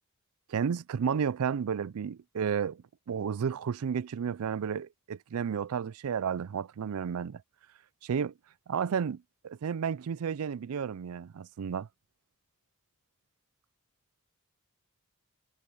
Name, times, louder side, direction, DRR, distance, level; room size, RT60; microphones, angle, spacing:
voice 1, 0.5-7.4 8.0-8.3 8.7-11.9, right 7 dB, 80° right, 0.4 m, -32 dB
head